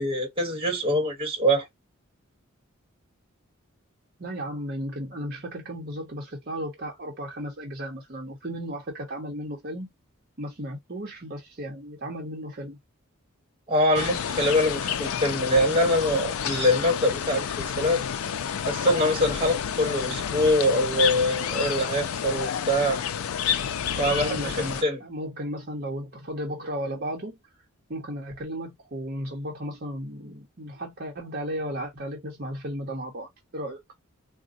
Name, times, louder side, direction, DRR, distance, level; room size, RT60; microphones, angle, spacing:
voice 1, 0.0-1.7 13.7-18.0 18.7-23.0 24.0-24.5 24.8-25.0, equal, 25° right, 1.2 m, -24 dB
voice 2, 4.2-9.9 10.4-12.8 23.9-27.4 27.9-33.8, equal, 45° right, 0.8 m, -34 dB
sound 1, 13.9-24.8, left 8 dB, 75° left, 0.4 m, -30 dB
3.9 x 2.1 x 2.6 m
head